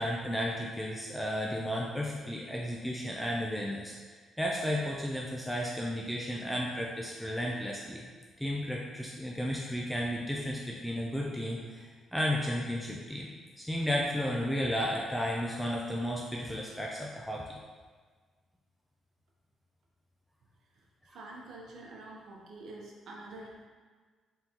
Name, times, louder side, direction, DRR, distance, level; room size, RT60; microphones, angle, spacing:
voice 1, 0.0-4.0 4.4-8.1 8.4-13.3 13.6-17.6 21.1-21.2, equal, 5° left, -3 dB, 0.4 m, -33 dB
voice 2, 20.7-23.7, right 2 dB, 70° right, -1 dB, 0.8 m, -47 dB
3.9 x 3.6 x 2.9 m, 1.5 s
cardioid pair, 90°, 0 cm